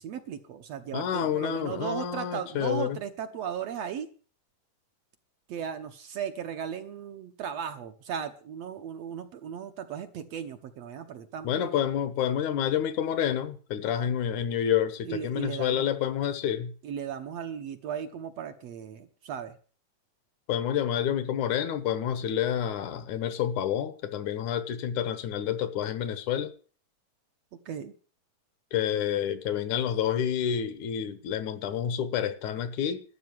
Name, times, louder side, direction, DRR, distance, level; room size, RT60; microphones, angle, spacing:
voice 1, 0.0-4.1 5.5-11.6 15.0-15.9 16.8-19.6 27.5-28.0, right 8 dB, 65° right, 1.9 m, -36 dB
voice 2, 0.9-3.0 11.4-16.7 20.5-26.5 28.7-33.0, left 9 dB, 70° left, 2.4 m, -29 dB
13.0 x 8.0 x 9.5 m
omnidirectional pair, 3.7 m